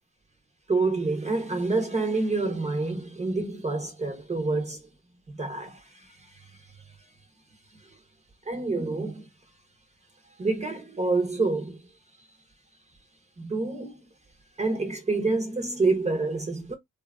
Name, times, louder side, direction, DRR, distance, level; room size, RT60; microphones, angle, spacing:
voice 1, 0.7-4.8 5.4-6.4 8.5-9.3 10.4-11.8 13.4-14.0 14.6-16.7, right 3 dB, 20° right, 0.8 m, -27 dB
2.8 x 2.4 x 2.2 m
cardioid pair, 90°, 30 cm